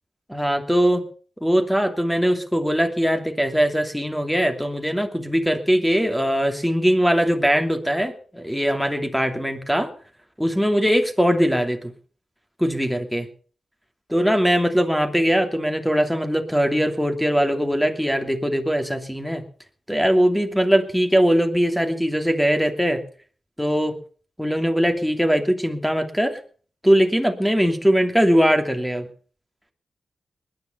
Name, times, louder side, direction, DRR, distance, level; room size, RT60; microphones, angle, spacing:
voice 1, 0.3-1.0 1.4-9.9 10.4-11.8 12.6-13.3 14.1-19.4 19.9-23.0 23.6-24.0 24.4-26.4 26.8-29.1, equal, ahead, 6 dB, 2.8 m, -21 dB
20.0 x 10.5 x 5.7 m, 0.43 s
cardioid pair, 50°, 0 cm